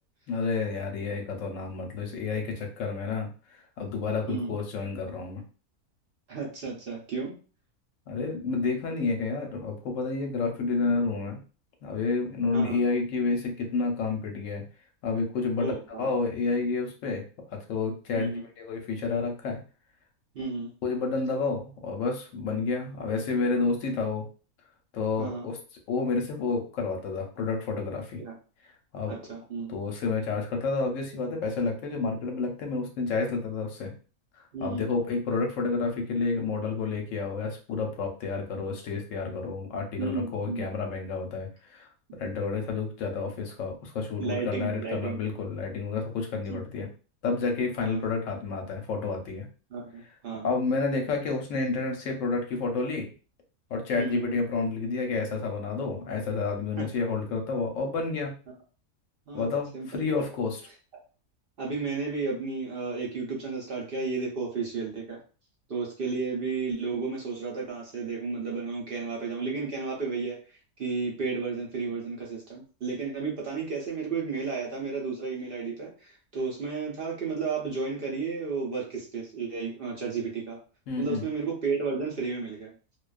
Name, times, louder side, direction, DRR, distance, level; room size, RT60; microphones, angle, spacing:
voice 1, 0.3-5.4 8.1-11.4 11.8-14.6 15.0-15.7 16.0-17.2 17.5-19.6 20.8-24.3 24.9-25.6 25.9-28.2 28.9-29.2 29.7-33.9 34.6-41.9 42.2-46.9 47.2-49.5 50.4-53.1 53.7-58.3 59.3-60.6 80.9-81.3, left 4 dB, 65° left, 3 dB, 0.9 m, -30 dB
voice 2, 6.3-7.3 12.5-12.8 15.6-16.1 18.1-18.4 20.3-20.7 25.2-25.5 28.2-28.3 29.1-29.7 34.5-34.9 40.0-40.7 44.2-45.2 46.5-46.6 47.8-48.0 49.7-50.5 54.0-54.3 56.8-56.9 59.3-60.0 61.6-65.2 65.7-70.4 70.8-80.6 81.0-82.7, right 4 dB, 55° right, -2 dB, 0.6 m, -33 dB
2.4 x 2.2 x 2.3 m, 0.36 s
omnidirectional pair, 1.6 m